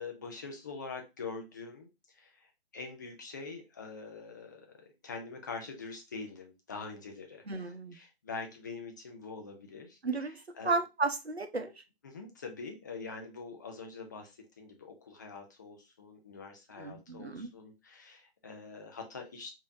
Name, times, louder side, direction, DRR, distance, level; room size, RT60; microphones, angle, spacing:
voice 1, 0.0-4.7 5.0-10.0 10.6-10.8 12.0-19.5, left 4 dB, 20° left, 3 dB, 0.5 m, -44 dB
voice 2, 7.5-8.0 10.0-11.7 16.8-17.5, right 3 dB, 90° right, 7 dB, 0.8 m, -33 dB
4.8 x 2.8 x 2.6 m, 0.25 s
figure-of-eight pair, 135°, 31 cm